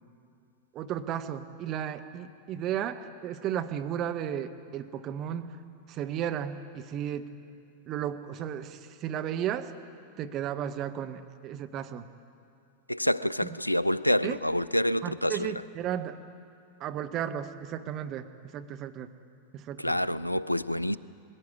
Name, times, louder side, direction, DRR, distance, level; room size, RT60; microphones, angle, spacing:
voice 1, 0.7-5.6 5.9-7.3 7.9-9.7 10.2-12.0 13.4-13.5 14.2-14.4 15.0-16.2 16.8-19.1 19.5-20.0, right 10 dB, 35° right, 8 dB, 0.9 m, -34 dB
voice 2, 12.9-15.5 19.8-21.0, equal, 85° left, 18 dB, 0.4 m, -27 dB
21.0 x 16.5 x 8.4 m, 2.5 s
figure-of-eight pair, 90°, 0 cm